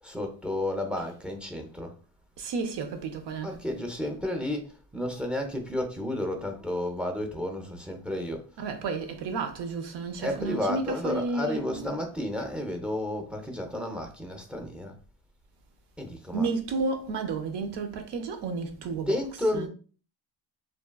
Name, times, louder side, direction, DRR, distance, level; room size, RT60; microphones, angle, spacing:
voice 1, 0.0-1.9 3.4-8.5 10.2-14.9 16.0-16.5 18.8-19.7, left 1 dB, 5° right, 0.5 m, -32 dB
voice 2, 2.4-3.6 8.6-11.8 16.3-19.2 19.5-19.7, right 4 dB, 80° right, 0.7 m, -32 dB
3.0 x 2.2 x 2.2 m
cardioid pair, 90°, 40 cm